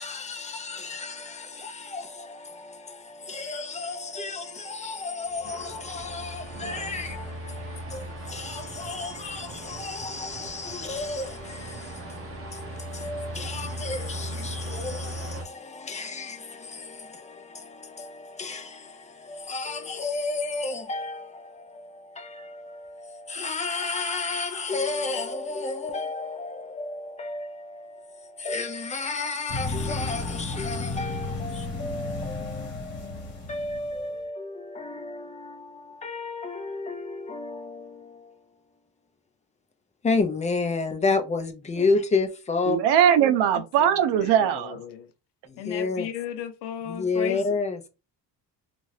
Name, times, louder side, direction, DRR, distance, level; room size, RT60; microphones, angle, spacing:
voice 1, 0.0-38.5 40.0-42.8 45.5-46.1 46.8-47.8, left 3 dB, 15° left, 0.5 m, -32 dB
sound 1, 5.3-15.4, right 1 dB, 30° right, 0.8 m, -38 dB
sound 2, 29.5-34.1, left 3 dB, 35° left, 1.5 m, -33 dB
voice 2, 42.7-44.8, right 9 dB, 80° right, 0.6 m, -20 dB
voice 3, 43.8-44.3 44.6-45.0 45.6-47.4, left 7 dB, 75° left, 0.7 m, -35 dB
2.7 x 2.5 x 3.1 m
cardioid pair, 135°, 41 cm